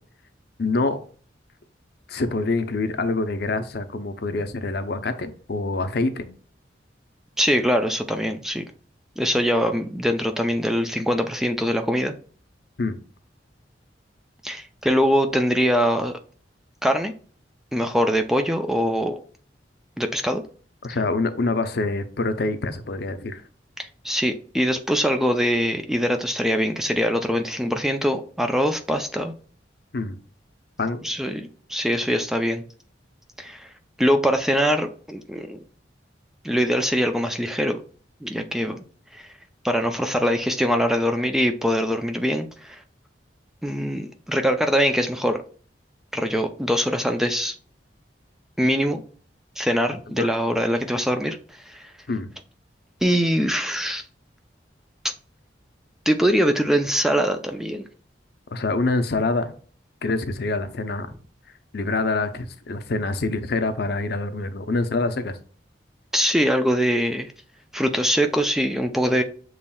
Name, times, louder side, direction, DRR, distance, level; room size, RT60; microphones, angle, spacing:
voice 1, 0.6-1.0 2.1-6.3 12.8-13.0 20.8-23.4 29.9-30.2 30.8-31.0 50.2-50.3 52.1-52.3 58.5-59.5 60.0-61.1 61.7-65.4, left 3 dB, 60° left, 9 dB, 0.6 m, -25 dB
voice 2, 7.4-8.6 9.2-12.1 14.4-16.2 16.8-17.1 17.7-19.2 20.0-20.4 23.8-29.3 31.0-32.6 33.4-33.7 34.0-35.6 36.4-37.8 38.2-38.8 39.1-39.3 39.6-42.8 43.6-45.4 46.1-47.5 48.6-49.0 49.6-51.8 53.0-54.0 56.1-57.9 66.1-67.3 67.7-69.2, equal, ahead, 6 dB, 0.4 m, -23 dB
7.0 x 3.1 x 2.3 m, 0.42 s
head